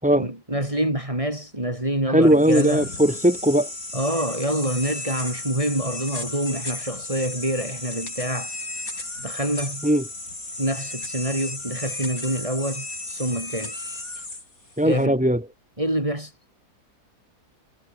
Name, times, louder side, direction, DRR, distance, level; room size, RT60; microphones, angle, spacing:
voice 1, 0.1-2.9 3.9-8.5 9.2-9.8 10.6-13.7 14.8-15.2 15.8-16.3, right 1 dB, 20° right, 4.1 m, -26 dB
voice 2, 2.1-3.7 9.8-10.0 14.8-15.4, equal, 5° right, 6.7 m, -19 dB
sound 1, 2.2-15.1, left 2 dB, 60° left, 6.6 m, -34 dB
omnidirectional pair, 1.7 m